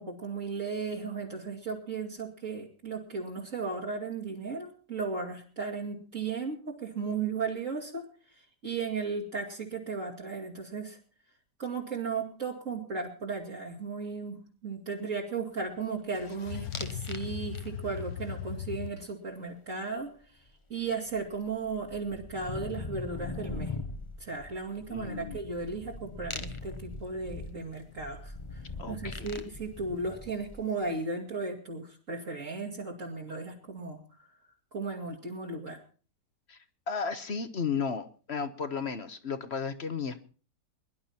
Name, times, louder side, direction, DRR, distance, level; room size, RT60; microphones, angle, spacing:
voice 1, 0.0-11.0 11.6-20.4 20.7-23.8 24.2-34.4 34.7-35.8, right 4 dB, 50° right, -2 dB, 2.6 m, -36 dB
sound 1, 16.2-18.9, left 8 dB, 65° left, 1.5 m, -38 dB
sound 2, 16.7-17.2 17.5-18.0 20.5-20.6 20.8-30.8, left 3 dB, 20° left, 0.9 m, -41 dB
voice 2, 24.9-25.4 28.8-29.4 36.5-36.6 36.9-40.3, left 5 dB, 45° left, 11 dB, 1.2 m, -34 dB
22.5 x 11.5 x 4.3 m, 0.39 s
omnidirectional pair, 1.7 m